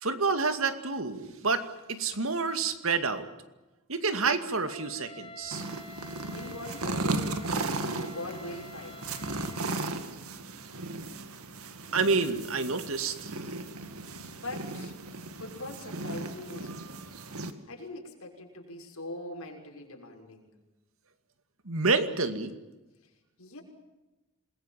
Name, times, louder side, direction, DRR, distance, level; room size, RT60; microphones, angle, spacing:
voice 1, 0.0-3.3 3.9-5.6 11.9-13.3 21.7-22.5, right 4 dB, 70° right, 9 dB, 2.3 m, -28 dB
Wind instrument woodwind instrument, 4.7-10.0, left 4 dB, 25° left, 4.3 m, -48 dB
sound 1, 5.5-17.5, right 2 dB, 85° right, 2.1 m, -36 dB
voice 2, 6.3-9.2 14.3-15.0 15.4-16.9 17.7-20.5 23.0-23.1 23.4-23.6, left 2 dB, 85° left, 1 dB, 6.4 m, -42 dB
28.0 x 21.5 x 7.6 m, 1.1 s
head